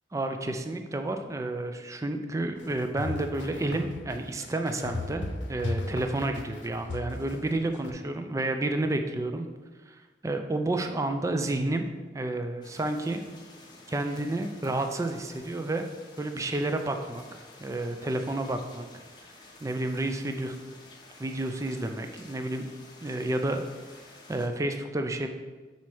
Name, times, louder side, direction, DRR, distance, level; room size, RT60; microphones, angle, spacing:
voice 1, 0.1-9.5 9.9-11.9 12.1-13.2 13.9-15.9 16.2-18.9 19.6-20.6 21.2-22.7 23.0-23.6 24.3-25.3, right 2 dB, 15° right, 6 dB, 0.4 m, -30 dB
sound 1, 2.6-7.9, left 2 dB, 85° left, 0.7 m, -36 dB
sound 2, 12.6-24.5, left 2 dB, 25° left, 1.0 m, -51 dB
6.0 x 4.1 x 4.7 m, 1.3 s
head